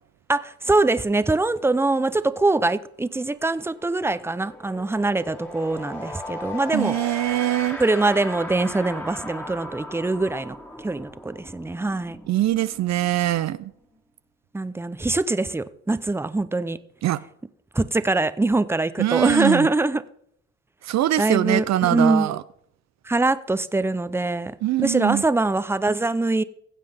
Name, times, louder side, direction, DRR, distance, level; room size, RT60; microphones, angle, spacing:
voice 1, 0.3-7.2 7.8-12.2 14.5-16.8 17.7-20.0 21.2-22.3 23.0-26.4, right 2 dB, 10° right, 0.5 m, -23 dB
sound 1, 2.9-3.1 3.4-14.0, left 1 dB, 5° left, 1.8 m, -38 dB
voice 2, 6.7-7.8 12.3-13.7 17.0-17.2 19.0-19.7 20.8-22.4 24.6-25.2, right 14 dB, 65° right, 0.5 m, -23 dB
16.0 x 7.5 x 3.4 m
cardioid pair, 90°, 30 cm